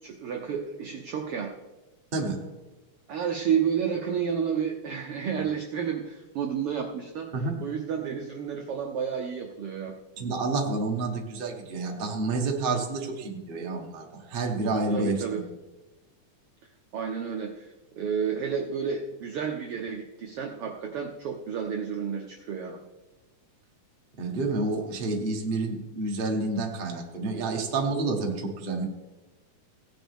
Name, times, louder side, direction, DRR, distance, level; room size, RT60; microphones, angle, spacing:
voice 1, 0.0-1.5 3.1-7.3 7.6-9.9 14.9-15.4 16.9-22.8, right 7 dB, 70° right, 2 dB, 1.3 m, -31 dB
voice 2, 10.2-15.4 24.2-28.8, right 3 dB, 40° right, 1 dB, 0.7 m, -29 dB
16.5 x 10.5 x 3.6 m, 1.1 s
omnidirectional pair, 3.6 m